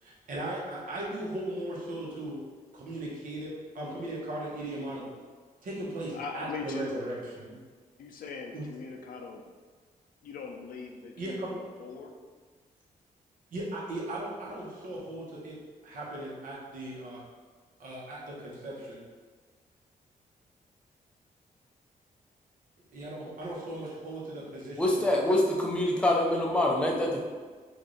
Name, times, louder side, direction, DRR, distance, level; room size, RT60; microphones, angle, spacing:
voice 1, 0.0-2.4 2.7-5.1 5.6-7.6 8.5-8.7 11.2-11.6 13.5-15.6 15.8-17.2 17.8-19.1 22.9-25.0, right 1 dB, 65° right, -5 dB, 1.0 m, -37 dB
voice 2, 6.1-6.9 8.0-9.4 10.2-12.1, left 5 dB, 70° left, 2 dB, 0.5 m, -41 dB
voice 3, 24.8-27.2, left 1 dB, 5° left, -2 dB, 0.5 m, -25 dB
3.2 x 2.6 x 3.8 m, 1.5 s
wide cardioid pair, 160°, 15 cm